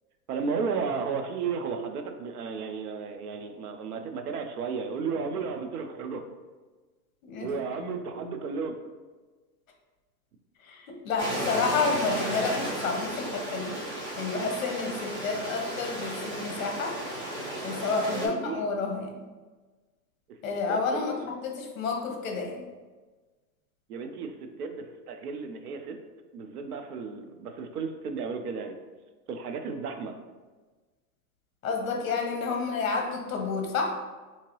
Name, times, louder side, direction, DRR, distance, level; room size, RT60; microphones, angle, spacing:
voice 1, 0.3-6.2 7.4-8.7 18.1-18.6 20.7-21.0 23.9-26.0 26.3-28.7 29.3-30.2, right 5 dB, 65° right, 6 dB, 0.6 m, -33 dB
voice 2, 10.6-13.8 14.1-17.0 17.5-19.2 20.4-22.7 31.6-34.0, left 4 dB, 55° left, 2 dB, 0.8 m, -30 dB
Stream, 11.2-18.3, right 1 dB, 30° right, 0.9 m, -34 dB
3.7 x 2.8 x 3.0 m, 1.3 s
supercardioid pair, 180°, 49 cm